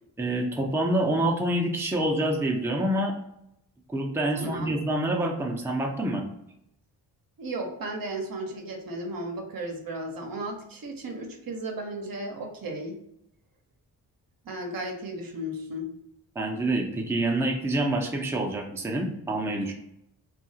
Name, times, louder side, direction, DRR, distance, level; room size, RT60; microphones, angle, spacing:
voice 1, 0.2-3.1 3.9-6.2 16.3-19.7, right 1 dB, 5° right, 0 dB, 0.6 m, -27 dB
voice 2, 4.3-4.7 7.4-13.0 14.4-15.9, right 1 dB, 50° right, 2 dB, 0.8 m, -35 dB
2.7 x 2.4 x 2.7 m, 0.78 s
supercardioid pair, 40°, 45 cm